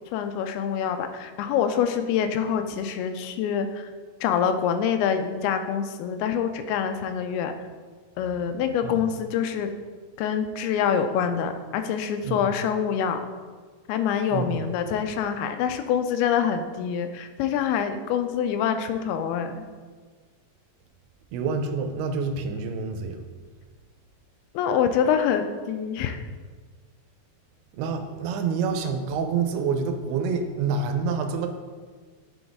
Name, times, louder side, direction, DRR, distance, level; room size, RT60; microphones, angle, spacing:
voice 1, 0.1-3.9 4.2-7.5 8.2-9.7 10.2-13.3 13.9-19.6 24.5-26.2, left 8 dB, 85° left, 8 dB, 2.5 m, -25 dB
voice 2, 14.3-14.6 21.3-23.2 27.8-31.5, right 5 dB, 90° right, 6 dB, 2.6 m, -27 dB
9.0 x 3.9 x 3.5 m, 1.5 s
omnidirectional pair, 4.5 m